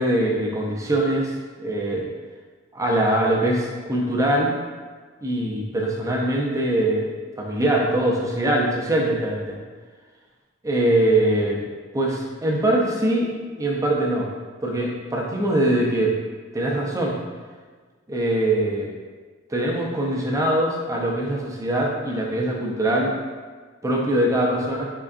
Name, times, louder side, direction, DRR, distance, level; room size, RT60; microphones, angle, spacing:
voice 1, 0.0-1.3 1.6-2.1 2.7-4.6 5.2-9.6 10.6-11.6 11.9-13.3 13.6-14.3 14.6-16.1 16.5-17.2 18.1-18.9 19.5-23.1 23.8-24.8, right 1 dB, 15° right, -2 dB, 0.4 m, -22 dB
3.6 x 3.3 x 2.4 m, 1.5 s
head